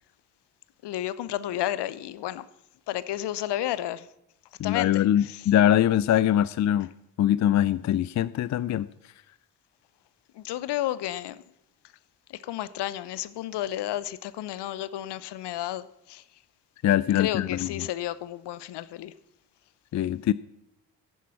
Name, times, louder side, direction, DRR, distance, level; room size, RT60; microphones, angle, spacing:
voice 1, 0.8-2.5 2.9-4.1 4.6-5.4 10.3-11.4 12.3-16.2 17.1-19.1, left 13 dB, 55° left, 0.9 m, -32 dB
voice 2, 4.6-6.9 7.2-8.9 16.8-17.9 19.9-20.3, left 11 dB, 35° left, 0.5 m, -23 dB
14.5 x 11.0 x 5.8 m
figure-of-eight pair, 40°, 49 cm